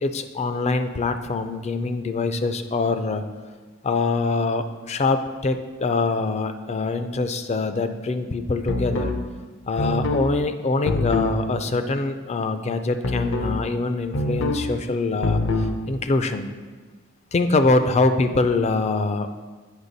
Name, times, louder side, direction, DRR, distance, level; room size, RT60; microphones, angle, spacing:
voice 1, 0.0-3.2 3.8-9.1 9.7-16.5 17.3-19.5, left 3 dB, 30° left, 9 dB, 0.4 m, -24 dB
sound 1, 8.7-9.2 9.8-10.2 10.9-11.4 13.0-13.6 14.1-14.6 15.2-15.7, left 2 dB, 65° left, 0.7 m, -24 dB
8.1 x 5.6 x 4.0 m, 1.4 s
head